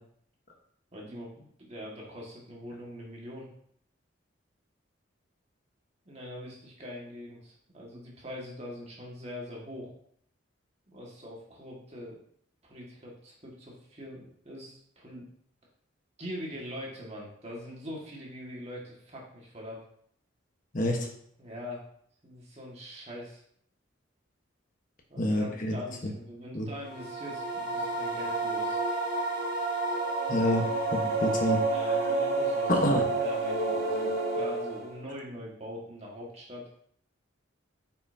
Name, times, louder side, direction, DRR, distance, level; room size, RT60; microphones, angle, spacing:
voice 1, 0.9-3.5 6.1-9.9 10.9-12.2 12.6-15.3 16.2-19.8 21.4-21.8 22.2-23.4 25.1-28.8 31.7-32.7 33.2-36.7, equal, 35° right, -3 dB, 2.0 m, -43 dB
voice 2, 25.2-25.7 26.5-26.7 30.3-30.7 30.9-31.6 32.7-33.1, left 1 dB, 45° left, 1 dB, 1.3 m, -27 dB
sound 1, 26.8-35.0, right 3 dB, 55° right, 1.7 m, -29 dB
9.1 x 5.8 x 2.8 m, 0.65 s
head